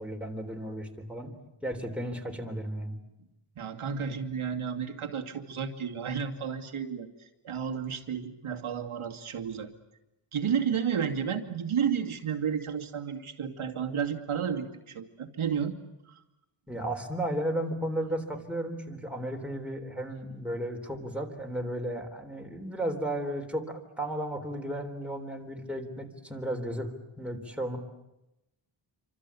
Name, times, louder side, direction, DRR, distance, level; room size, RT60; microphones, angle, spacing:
voice 1, 0.0-1.3 1.6-3.0 16.7-27.8, right 1 dB, ahead, 2 dB, 3.7 m, -34 dB
voice 2, 3.6-9.7 10.3-15.7 16.1-16.2, right 7 dB, 75° right, 2 dB, 2.5 m, -32 dB
27.5 x 25.5 x 8.5 m, 0.93 s
wide cardioid pair, 125°, 49 cm